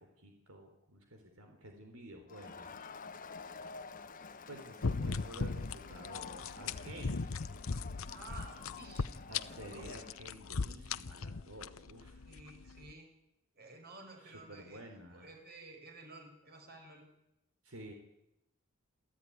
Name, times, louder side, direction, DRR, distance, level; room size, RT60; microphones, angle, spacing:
voice 1, 0.2-2.7 4.5-7.3 9.3-12.2 14.2-15.3 17.6-17.9, right 1 dB, 85° right, 4 dB, 4.1 m, -51 dB
Crowd, 2.3-10.2, left 4 dB, 40° left, 1.2 m, -50 dB
sound 1, 4.8-12.9, left 4 dB, 70° left, 0.8 m, -39 dB
voice 2, 8.1-9.9 12.3-13.1 13.5-14.8 15.1-17.0, right 3 dB, 50° right, 3 dB, 6.9 m, -53 dB
27.5 x 14.5 x 9.8 m, 0.89 s
head